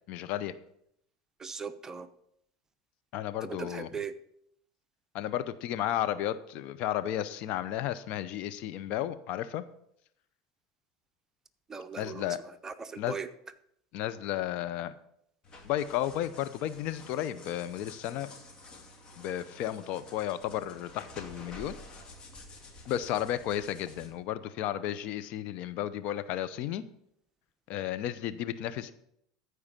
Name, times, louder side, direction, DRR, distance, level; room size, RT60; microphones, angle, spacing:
voice 1, 0.1-0.5 3.1-3.9 5.1-9.6 12.0-12.4 13.0-13.1 13.9-14.9 15.6-18.3 19.2-21.8 22.9-26.9 27.7-28.9, left 12 dB, 60° left, 12 dB, 0.7 m, -33 dB
voice 2, 1.4-2.1 3.4-4.1 11.7-13.3, right 5 dB, 20° right, 9 dB, 0.8 m, -39 dB
sound 1, 15.4-24.1, left 2 dB, 35° left, 2.5 m, -50 dB
13.5 x 4.9 x 6.7 m, 0.72 s
hypercardioid pair, 85°, 3 cm